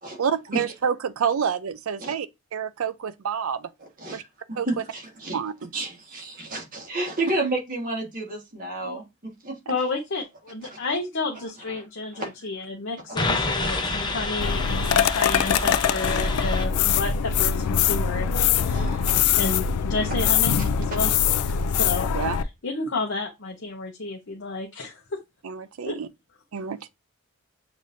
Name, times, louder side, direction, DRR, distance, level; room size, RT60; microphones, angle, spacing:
voice 1, 0.2-3.7 4.1-4.2 4.6-4.7 5.3-5.7 22.1-22.4 25.4-26.1 26.5-26.9, right 7 dB, 70° right, 0.4 m, -28 dB
voice 2, 4.0-5.4 5.7-9.6 10.7-10.8 11.7-11.8 12.1-12.3 13.3-13.4 13.8-13.9 15.5-15.7 18.6-19.2, right 2 dB, 40° right, 1.4 m, -31 dB
voice 3, 9.7-18.3 18.6-19.0 19.4-21.1 21.4-22.1 22.6-25.2 25.8-26.0, left 3 dB, 55° left, 0.8 m, -31 dB
sound 1, 13.2-16.7, left 3 dB, 20° left, 0.6 m, -28 dB
sound 2, 14.4-22.4, left 8 dB, 90° left, 0.4 m, -23 dB
6.6 x 2.7 x 2.6 m
head